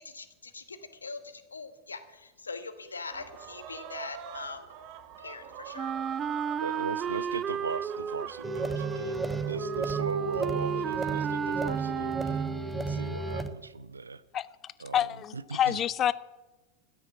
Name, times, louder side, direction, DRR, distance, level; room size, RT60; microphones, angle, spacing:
voice 1, 0.0-4.7 5.2-5.9, left 4 dB, 75° left, 10 dB, 1.3 m, -42 dB
sound 1, 3.1-12.2, right 8 dB, 45° right, 1.5 m, -46 dB
Wind instrument woodwind instrument, 5.8-12.8, right 8 dB, 25° right, 0.5 m, -33 dB
voice 2, 6.6-9.2 9.4-12.4 12.8-14.2 14.8-15.1 15.3-15.8, right 4 dB, 75° right, 17 dB, 0.6 m, -38 dB
sound 2, 8.4-13.5, right 3 dB, 5° right, 1.1 m, -33 dB
voice 3, 14.3-16.1, left 10 dB, 30° left, 20 dB, 0.4 m, -28 dB
13.0 x 9.6 x 8.6 m, 1.1 s
figure-of-eight pair, 90°, 0 cm